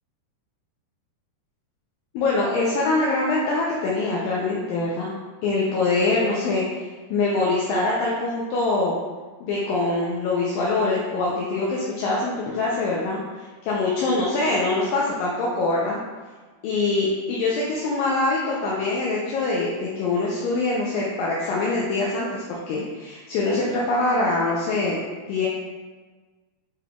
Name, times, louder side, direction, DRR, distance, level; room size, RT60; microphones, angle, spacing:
voice 1, 2.1-5.1 5.4-9.0 9.4-16.0 16.6-25.0 25.3-25.5, left 3 dB, 80° left, -4 dB, 2.2 m, -24 dB
6.9 x 3.3 x 2.3 m, 1.3 s
omnidirectional pair, 4.2 m